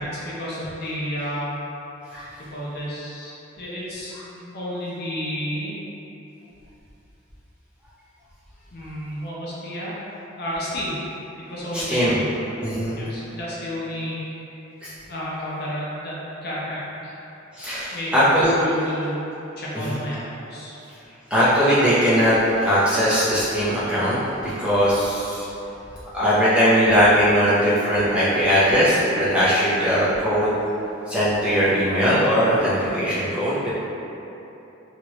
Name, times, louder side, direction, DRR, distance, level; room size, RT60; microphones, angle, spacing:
voice 1, 0.0-1.5 2.4-5.8 8.7-9.9 10.4-10.9 11.5-12.3 13.0-14.3 15.1-17.1 17.9-19.2 19.6-20.8, equal, 50° left, -7 dB, 0.6 m, -31 dB
voice 2, 11.7-12.2 12.6-13.0 14.8-14.9 17.6-18.5 19.8-20.0 21.3-24.2 24.4-25.4 26.1-30.5 31.1-33.7, equal, 5° right, -12 dB, 0.7 m, -20 dB
3.0 x 2.4 x 3.1 m, 3.0 s
head